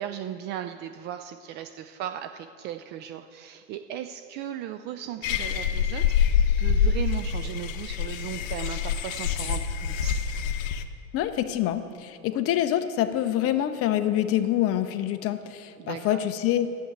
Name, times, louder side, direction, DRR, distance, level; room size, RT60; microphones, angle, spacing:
voice 1, 0.0-10.2 15.8-16.2, right 10 dB, 25° right, 8 dB, 0.3 m, -37 dB
sound 1, 5.2-10.8, left 8 dB, 65° left, 1.0 m, -26 dB
voice 2, 11.1-16.7, left 12 dB, 35° left, 10 dB, 0.8 m, -26 dB
11.0 x 7.8 x 8.6 m, 2.3 s
hypercardioid pair, 110°, 42 cm